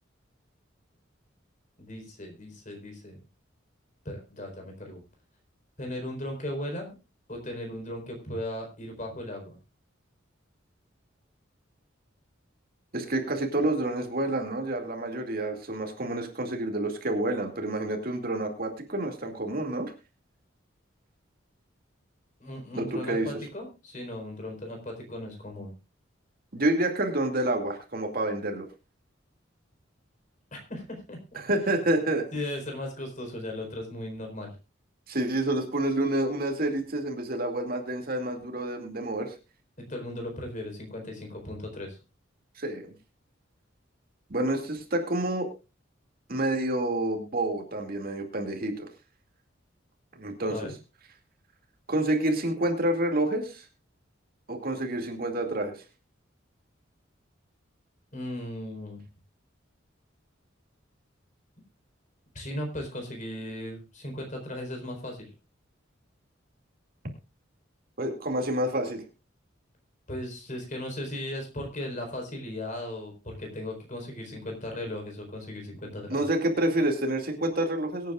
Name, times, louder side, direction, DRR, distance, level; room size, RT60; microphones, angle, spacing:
voice 1, 1.8-3.2 4.0-5.0 5.8-6.9 7.3-9.6 22.4-25.7 30.5-31.4 32.3-34.5 39.8-42.0 50.5-50.7 58.1-59.0 62.3-65.3 70.1-76.2, left 1 dB, 40° left, 3 dB, 4.3 m, -37 dB
voice 2, 12.9-19.9 22.7-23.3 26.5-28.7 31.3-32.3 35.1-39.3 42.6-42.9 44.3-45.5 46.3-48.9 50.2-50.6 51.9-53.7 54.5-55.7 68.0-69.0 76.1-78.1, right 1 dB, 50° right, 3 dB, 2.3 m, -28 dB
23.0 x 9.1 x 2.4 m, 0.29 s
head